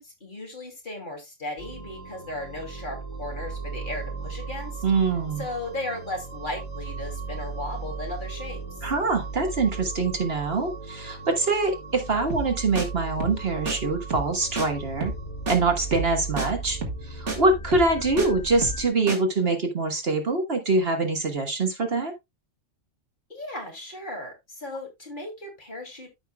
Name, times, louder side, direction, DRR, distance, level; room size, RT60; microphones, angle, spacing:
voice 1, 0.0-4.8 5.4-8.8 18.2-18.3 23.3-26.1, left 2 dB, 40° left, 2.7 m, -36 dB
sound 1, 1.6-18.9, right 4 dB, 25° left, 2.0 m, -37 dB
voice 2, 4.8-5.4 8.8-15.1 15.5-22.1, right 3 dB, 50° right, 1.5 m, -24 dB
sound 2, 12.3-12.5 12.8-12.9 13.2-13.4 13.7-13.8 14.1-14.3 14.6-14.7 15.0-15.2 15.5-15.6 15.9-16.1 16.4-16.5 16.8-17.0 17.3-17.4 17.7-18.3 18.6-18.8 19.1-19.2, right 3 dB, 70° right, 2.1 m, -30 dB
13.5 x 5.6 x 2.2 m
omnidirectional pair, 1.3 m